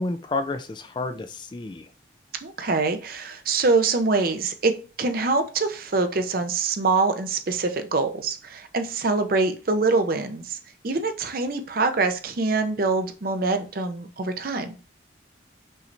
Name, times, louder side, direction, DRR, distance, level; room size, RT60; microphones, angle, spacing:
voice 1, 0.0-1.9, left 2 dB, 25° left, 9 dB, 0.3 m, -30 dB
voice 2, 2.4-4.7 5.0-10.6 10.8-14.8, right 3 dB, 50° right, 8 dB, 0.5 m, -24 dB
5.5 x 3.2 x 2.6 m, 0.35 s
head